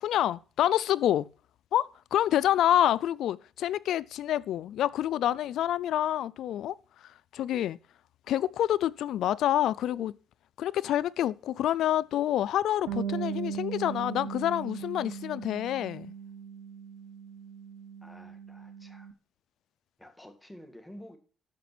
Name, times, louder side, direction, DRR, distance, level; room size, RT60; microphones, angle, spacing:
voice 1, 0.0-1.3 1.7-6.8 7.3-7.8 8.3-10.1 10.6-16.1, left 12 dB, 80° left, 0.4 m, -27 dB
Bass guitar, 12.9-19.1, right 7 dB, 90° right, 0.8 m, -38 dB
voice 2, 18.0-19.1 20.0-21.2, equal, 10° left, 2.2 m, -50 dB
12.5 x 5.2 x 6.0 m
cardioid pair, 90°, 0 cm